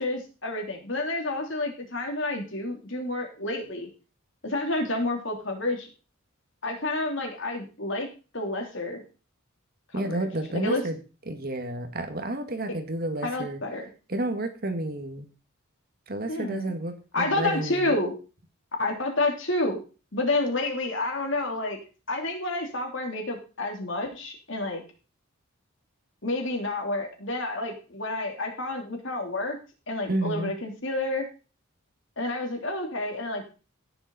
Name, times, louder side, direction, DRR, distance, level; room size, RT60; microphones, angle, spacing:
voice 1, 0.0-3.9 4.4-5.9 6.6-8.1 8.3-9.0 9.9-10.2 10.5-10.8 12.7-12.8 13.2-13.9 16.3-16.7 17.1-18.1 18.8-19.8 20.1-21.8 22.1-24.8 26.2-29.6 29.9-31.3 32.2-33.4, left 2 dB, 60° left, 2 dB, 3.4 m, -29 dB
voice 2, 9.9-11.0 11.3-13.6 14.1-15.3 16.1-17.9 30.1-30.5, right 1 dB, 45° right, 7 dB, 1.7 m, -31 dB
16.5 x 7.0 x 4.1 m, 0.33 s
head